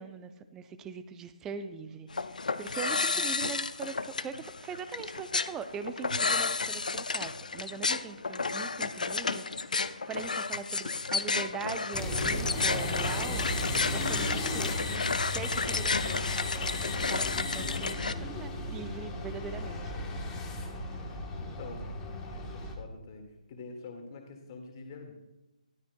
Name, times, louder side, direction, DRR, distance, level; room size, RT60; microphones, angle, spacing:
voice 1, 0.0-13.4 13.9-15.0 15.3-19.9, right 6 dB, 10° right, 11 dB, 0.5 m, -42 dB
sound 1, 2.1-18.1, left 4 dB, 70° left, 0.5 m, -32 dB
sound 2, 11.9-22.7, left 1 dB, 10° left, 1.2 m, -35 dB
sound 3, 12.6-18.0, left 5 dB, 55° left, 1.1 m, -38 dB
voice 2, 21.4-21.9 22.3-23.2 23.5-25.1, left 4 dB, 30° left, 3 dB, 1.9 m, -45 dB
13.5 x 12.0 x 2.3 m, 0.97 s
figure-of-eight pair, 145°, 4 cm